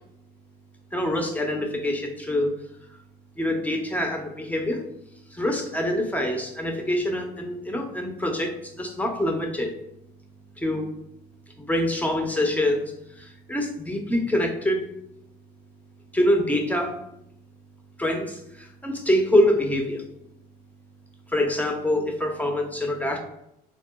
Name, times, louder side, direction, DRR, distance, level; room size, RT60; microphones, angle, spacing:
voice 1, 0.9-2.5 3.4-4.8 5.3-9.7 10.6-10.9 11.6-12.9 13.2-14.9 16.1-17.0 18.0-20.0 21.3-23.2, left 1 dB, 10° left, 3 dB, 0.6 m, -25 dB
3.6 x 2.3 x 2.3 m, 0.80 s
cardioid pair, 110°, 17 cm